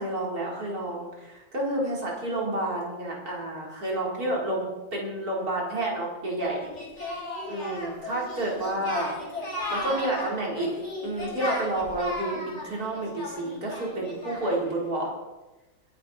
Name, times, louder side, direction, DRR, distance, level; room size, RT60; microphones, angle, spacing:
voice 1, 0.0-6.6 7.5-9.1 9.7-10.7 11.0-15.1, right 1 dB, 50° right, -3 dB, 4.5 m, -30 dB
Singing, 6.4-14.7, left 1 dB, 35° left, 3.9 m, -35 dB
22.0 x 11.0 x 4.3 m, 1.1 s
omnidirectional pair, 2.1 m